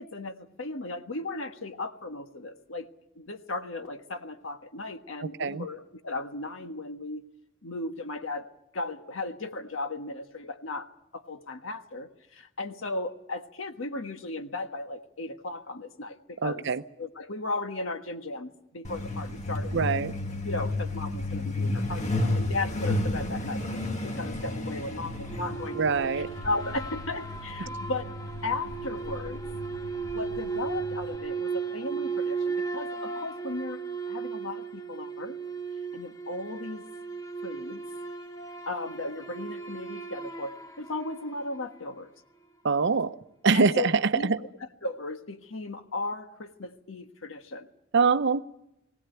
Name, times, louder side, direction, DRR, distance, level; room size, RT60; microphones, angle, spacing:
voice 1, 0.0-2.9 3.1-7.2 7.6-8.5 8.7-10.9 11.1-16.6 17.0-20.0 20.4-25.9 26.4-28.1 28.4-29.4 30.1-33.8 34.1-35.4 35.9-36.8 37.4-37.8 38.7-42.1 43.5-44.3 44.8-47.7, left 2 dB, 70° left, 7 dB, 1.4 m, -36 dB
voice 2, 5.2-5.7 16.4-16.8 19.7-20.1 25.8-26.3 42.6-43.2 43.4-44.4 47.9-48.4, right 4 dB, 60° right, 12 dB, 0.7 m, -24 dB
Truck, 18.8-31.2, left 2 dB, 35° left, 1.8 m, -33 dB
sound 1, 25.2-41.8, right 5 dB, 15° left, 1.0 m, -36 dB
20.0 x 17.5 x 9.1 m, 0.85 s
head